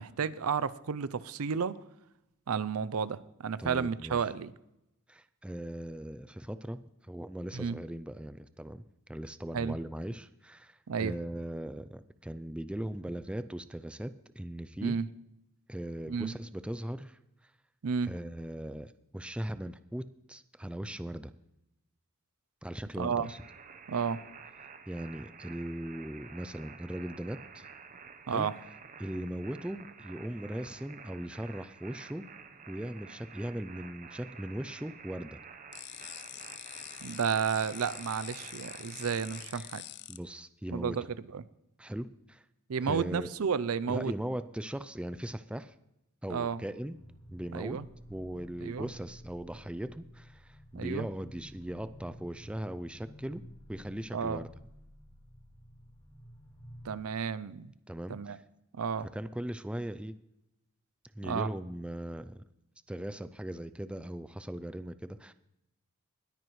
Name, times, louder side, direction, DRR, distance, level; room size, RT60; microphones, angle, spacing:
voice 1, 0.0-1.8 2.5-4.5 7.5-7.8 9.5-9.8 10.9-11.1 14.8-15.1 16.1-16.3 17.8-18.1 23.0-23.3 23.9-24.2 28.3-28.5 37.0-39.8 40.7-41.1 41.3-41.4 42.7-44.1 46.3-46.6 47.5-47.9 48.6-48.9 50.7-51.1 54.1-54.4 56.8-57.7 58.1-58.4 58.7-59.1 61.2-61.5, right 6 dB, 75° right, 17 dB, 0.5 m, -32 dB
voice 2, 3.6-4.2 5.1-8.8 9.1-15.0 15.7-17.5 18.0-21.3 22.6-23.4 24.9-27.7 28.3-28.5 29.0-32.3 32.7-35.4 39.5-39.7 40.1-41.0 41.8-42.4 42.8-43.3 43.9-45.8 46.2-47.0 47.3-47.8 48.1-53.4 53.7-54.5 57.9-58.4 59.1-60.2 61.1-62.4 62.9-65.3, right 1 dB, 5° right, 12 dB, 0.4 m, -39 dB
sound 1, 23.2-39.4, right 6 dB, 35° right, 0.8 m, -50 dB
sound 2, 35.7-40.2, left 15 dB, 50° left, 0.5 m, -45 dB
sound 3, 46.9-57.0, equal, 30° left, 3.3 m, -52 dB
19.5 x 9.2 x 3.2 m, 0.84 s
head